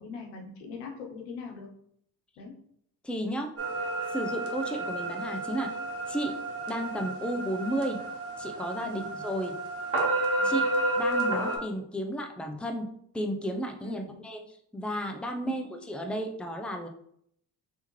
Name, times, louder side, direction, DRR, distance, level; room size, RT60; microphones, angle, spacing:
voice 1, 0.0-1.7 2.4-2.6 8.8-9.1 10.4-10.6 13.8-14.2, left 5 dB, 85° left, 1 dB, 0.9 m, -41 dB
voice 2, 3.0-3.5 4.1-5.7 6.1-6.4 6.7-8.0 8.4-9.6 10.4-12.9 13.1-14.4 14.7-16.9, equal, ahead, 4 dB, 0.6 m, -33 dB
sound 1, 3.6-11.6, right 2 dB, 30° right, 1.3 m, -31 dB
3.5 x 3.0 x 3.1 m, 0.68 s
hypercardioid pair, 55°, 46 cm